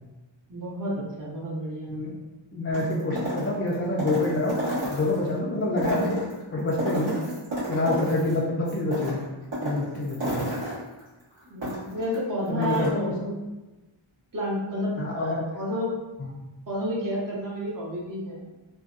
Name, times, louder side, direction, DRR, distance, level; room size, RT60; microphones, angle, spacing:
voice 1, 0.5-1.9 2.7-3.2 11.4-13.4 14.3-15.9 16.7-18.4, equal, 40° right, -5 dB, 0.8 m, -31 dB
voice 2, 2.5-4.6 4.9-6.2 6.5-7.2 7.7-9.2 9.6-10.5 12.5-13.1 15.0-15.4 16.2-16.3, left 2 dB, 30° left, -3 dB, 0.4 m, -27 dB
sound 1, 2.7-5.3 5.7-8.4 8.7-12.2 12.5-12.9, right 1 dB, 70° right, 1.3 m, -31 dB
2.6 x 2.1 x 2.4 m, 1.1 s
wide cardioid pair, 70°, 48 cm